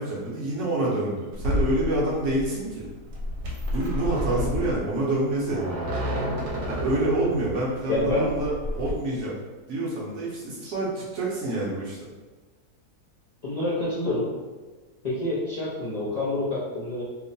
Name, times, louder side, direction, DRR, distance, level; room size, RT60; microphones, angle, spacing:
voice 1, 0.0-2.9 3.7-5.6 6.7-9.3 9.7-12.0, right 1 dB, 65° right, -5 dB, 0.8 m, -27 dB
sound 1, 1.3-8.9, equal, 80° right, 1.1 m, -30 dB
voice 2, 7.9-8.3 10.6-10.7 13.4-14.3 15.0-17.0, left 2 dB, 65° left, -10 dB, 0.4 m, -27 dB
2.9 x 2.1 x 2.6 m, 1.3 s
omnidirectional pair, 1.6 m